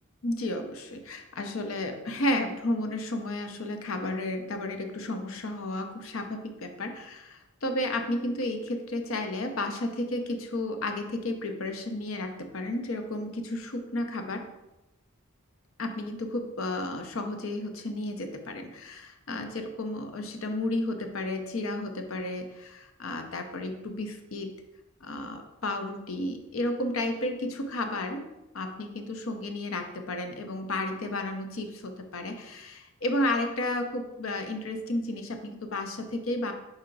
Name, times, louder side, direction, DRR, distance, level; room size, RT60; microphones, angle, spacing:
voice 1, 0.2-14.5 15.8-24.5 25.0-28.3 28.5-36.5, left 1 dB, 70° left, 6 dB, 0.7 m, -32 dB
5.6 x 4.3 x 3.9 m, 0.98 s
head